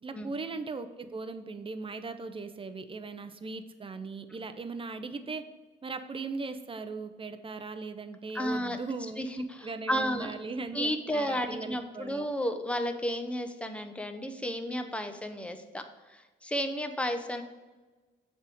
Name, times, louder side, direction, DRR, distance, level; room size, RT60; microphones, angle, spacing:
voice 1, 0.0-5.4 5.8-9.2 9.6-12.3, right 3 dB, 25° right, 9 dB, 0.6 m, -38 dB
voice 2, 8.3-8.8 9.2-10.3 10.7-15.8 16.1-17.4, equal, 5° left, 7 dB, 0.7 m, -32 dB
7.2 x 3.6 x 6.2 m, 1.3 s
cardioid pair, 90°, 20 cm